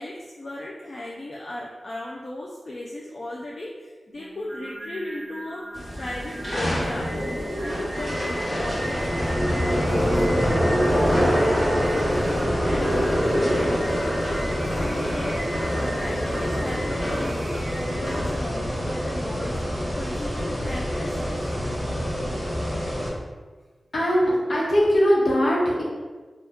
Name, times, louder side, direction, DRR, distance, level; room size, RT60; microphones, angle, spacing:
voice 1, 0.0-5.6 6.0-7.1 7.6-11.6 11.9-13.8 14.7-21.4, left 1 dB, 50° left, -3 dB, 0.4 m, -36 dB
Singing, 4.1-18.2, right 1 dB, 15° right, 0.4 m, -39 dB
sound 1, 5.7-23.1, equal, 25° left, 1.3 m, -25 dB
voice 2, 23.9-25.8, equal, 65° left, -6 dB, 1.0 m, -20 dB
2.9 x 2.3 x 3.4 m, 1.4 s
wide cardioid pair, 70°, 0 cm